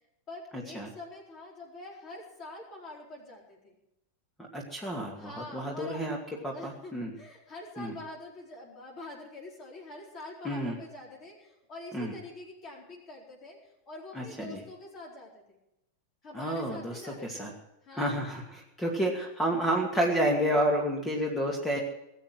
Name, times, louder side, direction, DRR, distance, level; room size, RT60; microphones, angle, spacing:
voice 1, 0.3-3.8 5.2-6.1 6.3-15.6 16.2-18.2 19.1-19.2, left 2 dB, 30° left, -2 dB, 4.5 m, -45 dB
voice 2, 4.5-6.2 6.4-7.1 7.8-7.9 10.4-10.7 11.9-12.1 14.1-14.6 16.3-17.0 17.3-17.5 17.9-21.8, right 1 dB, 10° left, 0 dB, 2.4 m, -30 dB
19.0 x 8.2 x 7.8 m, 0.89 s
figure-of-eight pair, 90°, 0 cm